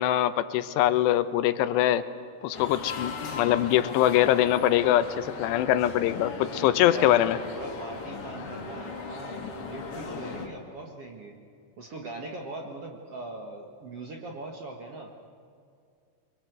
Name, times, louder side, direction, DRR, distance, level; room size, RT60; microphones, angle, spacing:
voice 1, 0.0-2.0 2.4-7.4, left 12 dB, 90° left, 12 dB, 3.0 m, -23 dB
sound 1, 2.5-10.5, left 4 dB, 45° left, 2.3 m, -38 dB
voice 2, 6.4-7.2 7.5-11.3 11.8-15.1, right 2 dB, 50° right, 1 dB, 1.9 m, -40 dB
25.0 x 23.0 x 8.1 m, 2.3 s
omnidirectional pair, 4.9 m